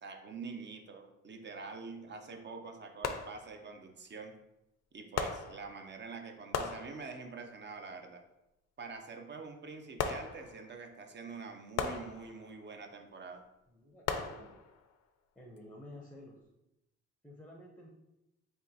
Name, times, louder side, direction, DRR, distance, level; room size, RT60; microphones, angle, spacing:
voice 1, 0.0-4.3 4.9-8.2 8.8-13.4, right 4 dB, 35° right, 5 dB, 0.6 m, -46 dB
sound 1, 1.5-1.7 3.0-3.8 5.2-6.1 6.5-7.5 10.0-10.9 11.8-12.7 14.1-15.0 15.6-15.7, left 6 dB, 60° left, 0.5 m, -38 dB
voice 2, 13.7-14.6 15.4-16.4 17.2-17.9, left 1 dB, 5° left, -1 dB, 0.6 m, -51 dB
3.6 x 2.3 x 4.0 m, 0.89 s
cardioid pair, 90°, 30 cm